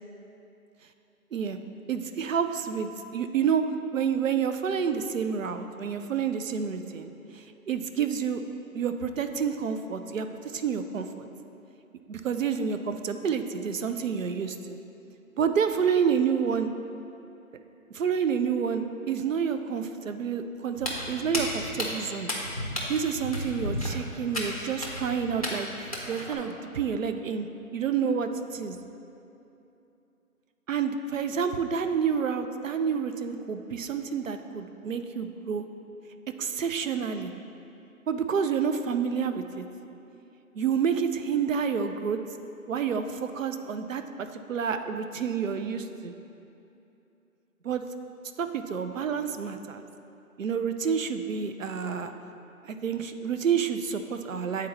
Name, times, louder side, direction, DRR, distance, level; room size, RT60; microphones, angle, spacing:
voice 1, 1.9-3.6 3.9-8.4 8.7-11.3 12.1-14.8 15.4-16.7 17.9-22.3 22.9-27.5 27.7-28.8 30.7-35.6 36.4-37.3 38.1-39.7 40.6-42.2 42.7-46.1 47.6-47.8 48.4-49.8 50.4-52.1 52.6-54.7, right 7 dB, 60° right, 8 dB, 0.5 m, -29 dB
Walk footsteps, 20.8-26.4, left 1 dB, 25° left, 0.5 m, -33 dB
8.2 x 4.0 x 4.1 m, 2.8 s
figure-of-eight pair, 160°, 44 cm